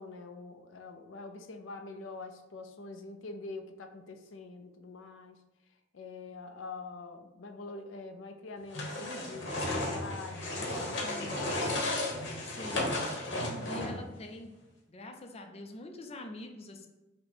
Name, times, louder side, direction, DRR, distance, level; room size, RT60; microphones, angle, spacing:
voice 1, 0.0-5.4 5.9-11.8, left 3 dB, 90° left, 7 dB, 0.5 m, -45 dB
sound 1, 8.7-14.1, left 1 dB, 75° left, 1.1 m, -34 dB
voice 2, 12.4-13.0 13.7-14.5 14.9-16.9, left 2 dB, 35° left, 5 dB, 0.5 m, -44 dB
5.6 x 2.2 x 4.3 m, 1.0 s
head